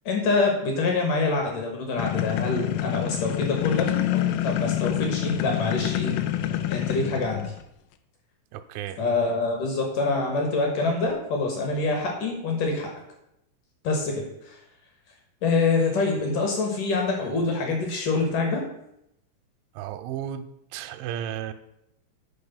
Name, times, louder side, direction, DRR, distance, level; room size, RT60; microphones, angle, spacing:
voice 1, 0.1-6.1 6.7-7.5 9.0-12.9 13.8-14.6 15.4-18.7, left 3 dB, 65° left, 1 dB, 2.1 m, -25 dB
sound 1, 2.0-7.6, left 12 dB, 85° left, 3.2 m, -27 dB
voice 2, 8.5-9.0 19.8-20.5 20.7-21.5, right 10 dB, 85° right, 9 dB, 2.8 m, -33 dB
9.6 x 4.7 x 7.1 m, 0.80 s
omnidirectional pair, 5.8 m